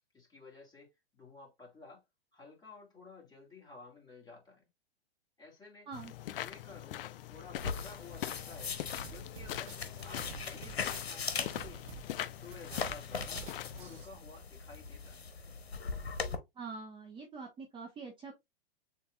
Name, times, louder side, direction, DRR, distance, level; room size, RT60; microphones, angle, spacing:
voice 1, 0.1-2.0 2.3-4.7 5.4-5.9 6.3-7.0 7.3-8.8 9.0-9.7 10.0-11.9 12.4-13.5 13.8-15.2, left 3 dB, 15° left, 2.3 m, -53 dB
sound 1, 5.9-14.0, left 12 dB, 65° left, 0.4 m, -42 dB
sound 2, 7.6-16.3, left 5 dB, 80° left, 0.9 m, -40 dB
sound 3, 9.0-14.1, right 12 dB, 55° right, 0.9 m, -49 dB
voice 2, 16.6-18.3, right 4 dB, 15° right, 1.0 m, -44 dB
6.9 x 2.8 x 2.4 m
hypercardioid pair, 110°, 31 cm